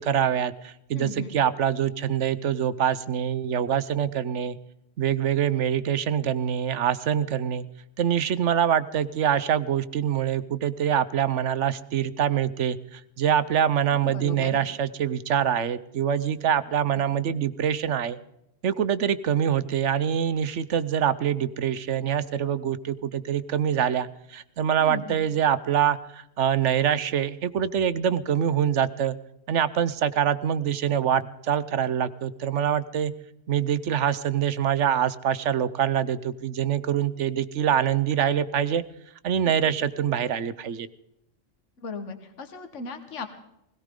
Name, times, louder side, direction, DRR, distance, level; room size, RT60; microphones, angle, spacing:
voice 1, 0.0-4.6 5.0-7.7 8.0-18.2 18.6-29.2 29.5-33.1 33.5-38.8 39.2-40.9, right 9 dB, 65° right, 16 dB, 1.1 m, -25 dB
voice 2, 0.9-1.3 14.0-14.6 16.9-17.0 24.8-25.3 39.4-39.5 41.8-43.3, left 4 dB, 65° left, 7 dB, 1.8 m, -36 dB
20.5 x 17.5 x 3.7 m, 0.82 s
omnidirectional pair, 1.3 m